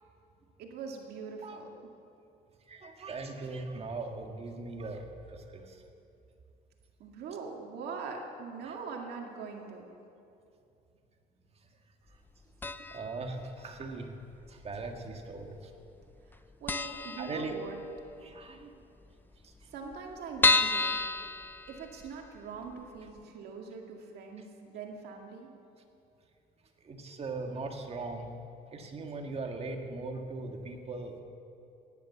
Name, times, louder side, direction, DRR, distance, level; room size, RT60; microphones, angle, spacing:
voice 1, 0.6-1.7 7.0-9.9 16.6-17.8 19.6-21.0 21.7-25.5, right 5 dB, 75° right, 1 dB, 2.1 m, -42 dB
voice 2, 2.7-5.8 8.6-8.7 12.8-14.2 14.5-15.7 17.2-17.6 18.2-18.8 19.4-19.5 26.8-28.3 28.7-31.2, right 3 dB, 35° right, 4 dB, 1.7 m, -39 dB
sound 1, 12.6-13.2 13.4-13.5 14.4-15.1 15.4-15.6 15.9-16.0 16.3-16.4 16.7-18.0 18.4-18.5 18.7-18.8 19.0-19.1 19.6-22.3 22.7-22.8 23.2-23.3, left 3 dB, 10° left, 0.4 m, -30 dB
16.5 x 11.0 x 7.2 m, 2.6 s
cardioid pair, 110°, 17 cm